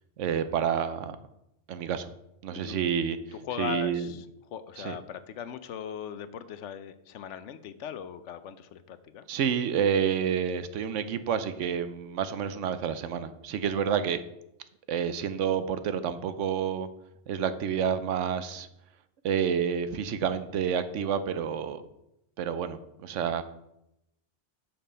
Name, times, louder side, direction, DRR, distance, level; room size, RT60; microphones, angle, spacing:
voice 1, 0.2-1.2 1.7-2.1 2.4-3.2 3.6-4.1 4.8-5.0 9.3-14.2 14.9-16.9 17.3-18.7 19.2-21.8 22.4-23.4, right 8 dB, 80° right, 12 dB, 1.0 m, -29 dB
voice 2, 3.3-9.3, left 9 dB, 75° left, 13 dB, 0.9 m, -39 dB
6.8 x 5.9 x 5.5 m, 0.84 s
omnidirectional pair, 1.2 m